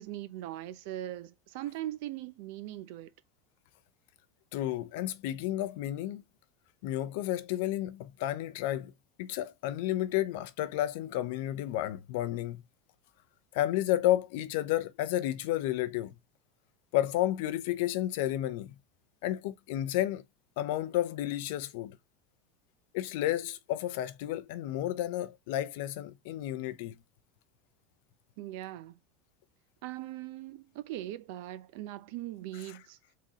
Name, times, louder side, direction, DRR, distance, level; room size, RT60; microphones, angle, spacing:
voice 1, 0.0-3.1 28.4-29.0 29.8-33.0, right 14 dB, 55° right, 0.6 m, -40 dB
voice 2, 4.5-6.2 6.8-8.9 9.2-12.6 13.5-16.1 16.9-18.7 19.2-20.2 20.6-22.0 22.9-26.9, left 13 dB, 60° left, 0.6 m, -31 dB
4.4 x 3.8 x 2.9 m
supercardioid pair, 180°, 0 cm